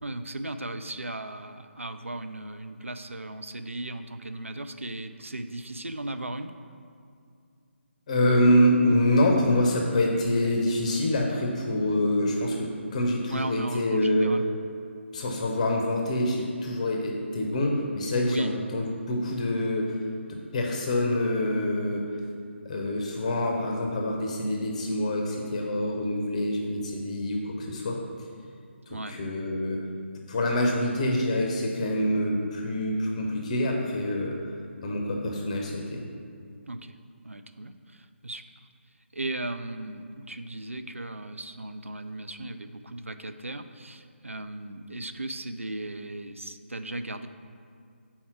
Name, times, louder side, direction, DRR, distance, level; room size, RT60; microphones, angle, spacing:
voice 1, 0.0-6.5 13.3-14.4 18.3-18.5 28.9-29.2 36.7-37.0 37.2-38.4 39.1-47.3, right 2 dB, 90° right, 9 dB, 0.4 m, -36 dB
voice 2, 8.1-14.3 15.1-20.0 20.3-22.1 22.6-28.0 28.9-29.8 30.3-34.3 34.8-36.0, left 1 dB, 35° left, 0 dB, 0.7 m, -26 dB
5.6 x 4.3 x 5.9 m, 2.3 s
figure-of-eight pair, 145°, 7 cm